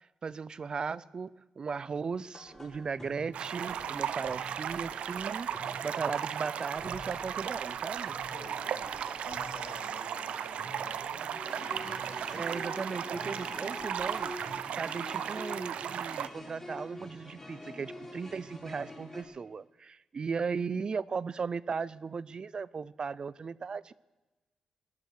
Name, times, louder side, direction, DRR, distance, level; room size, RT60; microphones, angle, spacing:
voice 1, 0.0-8.2 12.3-14.3 14.7-23.9, right 5 dB, 45° right, 20 dB, 0.4 m, -37 dB
sound 1, 2.3-19.2, left 1 dB, 25° left, 5.9 m, -47 dB
sound 2, 3.3-16.3, right 8 dB, 85° right, 0.6 m, -36 dB
voice 2, 3.8-4.1 5.8-6.2 8.1-12.5 13.5-13.6, left 2 dB, 75° left, -8 dB, 6.5 m, -51 dB
19.0 x 11.0 x 6.5 m, 1.1 s
cardioid pair, 90°, 2 cm